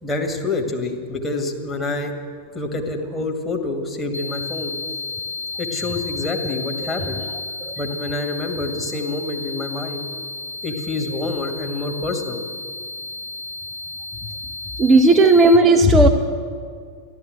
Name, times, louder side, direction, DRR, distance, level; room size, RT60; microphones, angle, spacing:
voice 1, 0.0-2.1 2.5-4.8 5.6-7.2 7.8-10.1 10.6-12.4 15.8-16.1, left 3 dB, 15° left, 1 dB, 2.1 m, -26 dB
sound 1, 4.1-15.6, left 3 dB, 75° left, 1.3 m, -32 dB
voice 2, 14.8-16.1, right 2 dB, 20° right, 5 dB, 0.7 m, -13 dB
14.0 x 12.0 x 7.9 m, 2.2 s
figure-of-eight pair, 90°, 0 cm